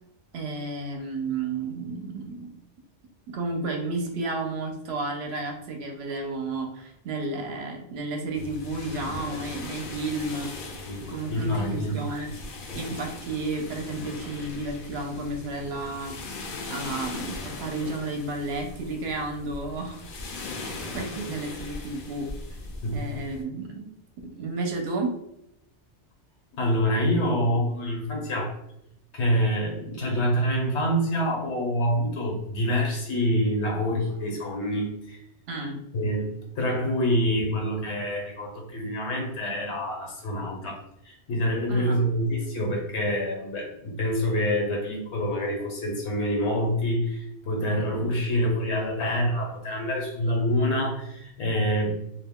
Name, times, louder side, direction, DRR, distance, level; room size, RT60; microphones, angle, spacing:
voice 1, 0.3-2.5 3.3-10.5 11.0-12.3 12.7-16.2 16.7-20.1 20.6-22.6 22.9-23.9 24.2-25.2 35.5-35.8 41.7-42.0, right 2 dB, 70° right, 3 dB, 0.8 m, -32 dB
sound 1, 8.3-23.4, left 2 dB, 60° left, 0.6 m, -39 dB
voice 2, 11.3-12.1 22.8-23.1 26.5-28.6 29.1-35.2 35.9-36.3 36.6-40.8 41.0-52.0, equal, 75° left, 0 dB, 1.1 m, -26 dB
2.4 x 2.2 x 3.5 m, 0.79 s
omnidirectional pair, 1.2 m